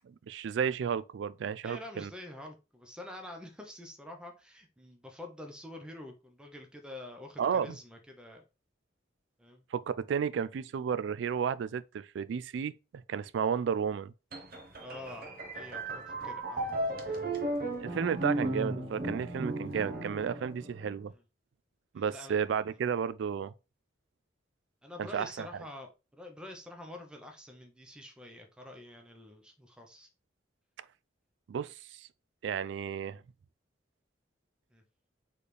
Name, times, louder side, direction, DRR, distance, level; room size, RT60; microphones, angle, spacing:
voice 1, 0.3-2.1 7.4-7.7 9.7-12.7 13.1-14.1 17.8-21.1 21.9-23.5 25.1-25.5 31.5-32.1 32.4-33.2, right 7 dB, 70° right, 0.3 m, -32 dB
voice 2, 1.6-8.4 9.4-9.6 14.8-15.3 15.5-17.3 21.1-21.2 21.9-22.4 22.7-22.8 24.8-30.1 34.7-34.8, left 1 dB, 5° right, 0.7 m, -47 dB
sound 1, 14.3-21.0, right 1 dB, 50° right, 0.8 m, -35 dB
4.3 x 3.3 x 3.3 m
head